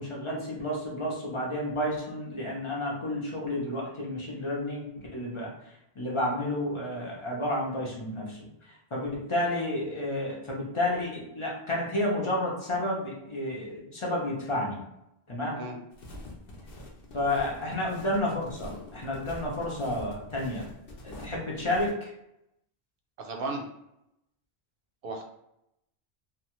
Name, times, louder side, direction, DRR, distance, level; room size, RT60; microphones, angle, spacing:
voice 1, 0.0-5.5 6.0-14.8 15.3-15.6 17.1-20.7 21.0-22.1, left 1 dB, 30° left, -3 dB, 0.7 m, -31 dB
sound 1, 15.9-21.9, left 1 dB, 60° left, 0.9 m, -45 dB
voice 2, 23.2-23.7 25.0-25.2, right 2 dB, 60° right, 2 dB, 0.7 m, -34 dB
2.7 x 2.3 x 3.0 m, 0.83 s
omnidirectional pair, 1.1 m